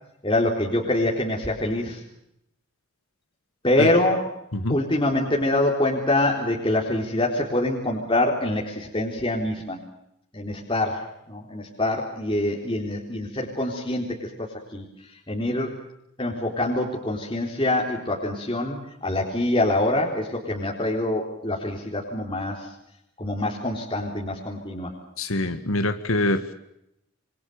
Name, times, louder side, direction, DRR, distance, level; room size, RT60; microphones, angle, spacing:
voice 1, 0.2-2.0 3.6-4.3 4.7-9.8 10.3-14.8 15.3-15.7 16.2-22.7 23.2-24.9, left 1 dB, 25° left, -1 dB, 3.9 m, -25 dB
voice 2, 25.2-26.5, left 2 dB, 75° left, 10 dB, 1.9 m, -24 dB
27.0 x 24.0 x 6.9 m, 0.80 s
head